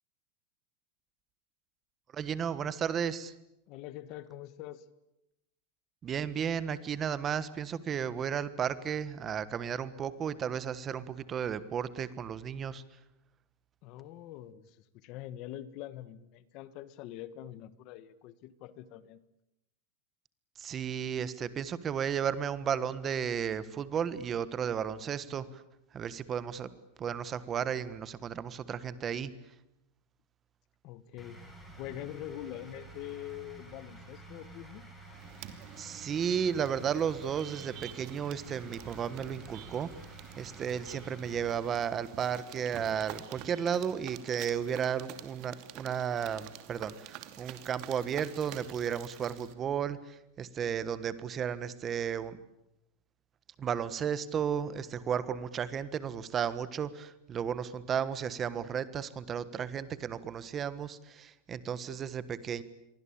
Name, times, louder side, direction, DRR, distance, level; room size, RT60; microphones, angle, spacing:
voice 1, 2.1-3.3 6.0-12.8 20.6-25.6 25.9-26.7 27.0-29.3 35.8-39.9 40.4-52.4 53.6-62.6, right 8 dB, 20° right, 15 dB, 1.4 m, -34 dB
voice 2, 3.7-4.8 13.8-19.2 30.8-34.9, left 13 dB, 40° left, 16 dB, 1.5 m, -44 dB
sound 1, 31.2-41.5, right 2 dB, 5° left, 5.8 m, -50 dB
sound 2, 35.1-49.5, right 12 dB, 40° right, 2.6 m, -49 dB
28.5 x 23.5 x 8.8 m, 0.87 s
supercardioid pair, 165°, 0 cm